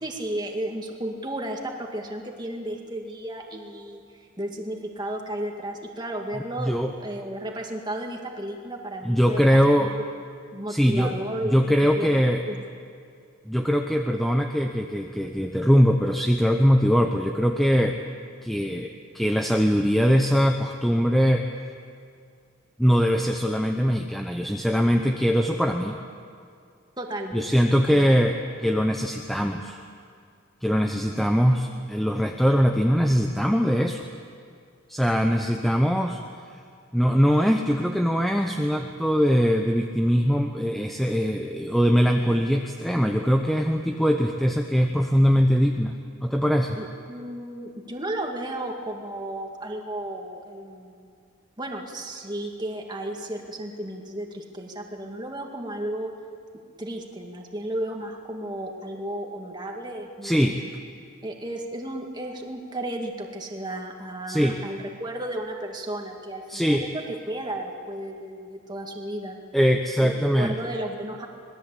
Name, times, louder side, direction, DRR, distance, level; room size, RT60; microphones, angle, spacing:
voice 1, 0.0-6.7 7.0-9.9 10.5-12.2 12.5-12.6 27.0-27.5 27.8-28.1 46.8-51.1 51.6-56.1 56.8-60.7 61.2-69.4 70.0-70.1 70.4-71.3, right 1 dB, 20° right, 1 dB, 2.2 m, -33 dB
voice 2, 6.6-6.9 9.0-9.9 10.7-11.1 11.4-12.4 13.5-18.0 18.4-21.5 22.8-26.0 27.3-29.8 30.6-34.1 34.9-36.2 36.9-46.8 60.2-60.6 64.3-64.6 66.5-66.8 69.5-70.5, equal, ahead, 3 dB, 0.8 m, -22 dB
26.0 x 20.5 x 8.4 m, 2.2 s
head